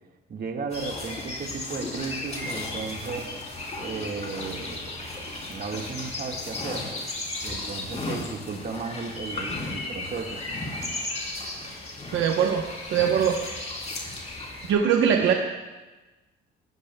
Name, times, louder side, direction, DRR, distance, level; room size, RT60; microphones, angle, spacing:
voice 1, 0.3-3.4 3.8-4.9 5.5-6.9 7.4-10.4 15.1-15.3, right 4 dB, 50° right, 2 dB, 1.7 m, -35 dB
sound 1, 0.7-14.7, left 2 dB, 35° left, 3.4 m, -35 dB
voice 2, 12.1-12.6 12.9-13.4 14.7-15.3, right 8 dB, 75° right, 2 dB, 1.0 m, -21 dB
20.5 x 13.0 x 2.3 m, 1.2 s
cardioid pair, 90°, 20 cm